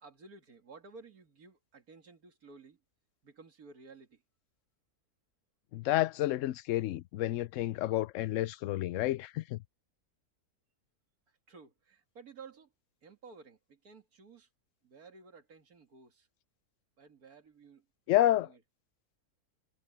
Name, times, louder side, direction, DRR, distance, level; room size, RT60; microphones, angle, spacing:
voice 1, 0.0-2.8 3.2-4.2 11.3-12.7 13.0-14.5 14.8-16.3 17.0-18.6, right 4 dB, 70° right, 2.5 m, -54 dB
voice 2, 5.7-9.6 18.1-18.5, left 14 dB, 70° left, 0.8 m, -30 dB
omnidirectional pair, 1.6 m